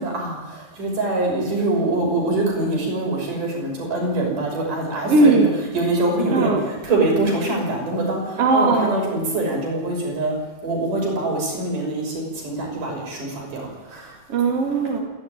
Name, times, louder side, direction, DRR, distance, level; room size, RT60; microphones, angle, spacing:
voice 1, 0.0-5.5 5.7-10.3 10.6-14.1, right 2 dB, 70° right, 0 dB, 7.5 m, -24 dB
voice 2, 5.0-5.5 6.3-6.7 8.4-9.0 14.3-15.0, right 3 dB, 45° right, -1 dB, 3.8 m, -18 dB
26.5 x 11.0 x 9.9 m, 1.1 s
omnidirectional pair, 3.8 m